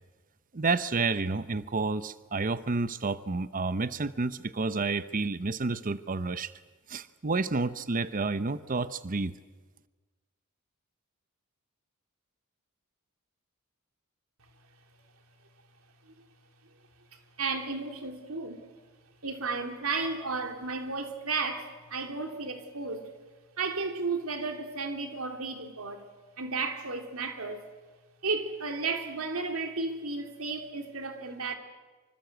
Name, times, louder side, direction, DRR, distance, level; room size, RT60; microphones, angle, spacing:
voice 1, 0.5-6.5 6.9-9.3, right 3 dB, 40° right, 14 dB, 0.8 m, -30 dB
voice 2, 17.4-18.6 19.2-23.1 23.6-26.0 26.4-27.7 28.2-31.6, right 4 dB, 70° right, 5 dB, 3.2 m, -33 dB
26.0 x 25.0 x 8.1 m, 1.3 s
head